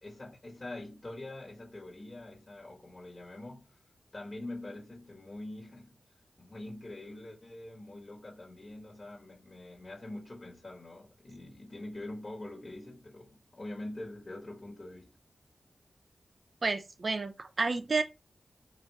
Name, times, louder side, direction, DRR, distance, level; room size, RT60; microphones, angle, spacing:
voice 1, 0.0-3.7 4.1-6.0 6.4-15.1, left 1 dB, 35° left, 1.6 m, -44 dB
voice 2, 16.6-18.0, right 3 dB, 55° right, 0.7 m, -30 dB
4.2 x 2.6 x 4.7 m
cardioid pair, 65°, 0 cm